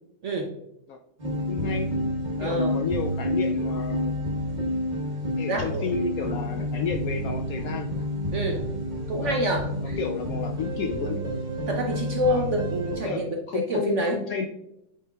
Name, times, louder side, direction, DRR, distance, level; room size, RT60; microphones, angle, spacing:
sound 1, 1.2-13.0, equal, 30° right, 1.0 m, -29 dB
voice 1, 1.5-1.9 2.4-4.2 5.4-8.1 9.2-9.4 10.0-11.2 12.3-12.4 13.0-14.5, left 5 dB, 70° left, 5 dB, 0.8 m, -31 dB
voice 2, 2.4-2.8 5.5-5.9 8.3-8.6 9.1-10.0 11.7-14.2, equal, 60° right, 2 dB, 0.8 m, -27 dB
8.5 x 4.9 x 2.3 m, 0.82 s
omnidirectional pair, 1.9 m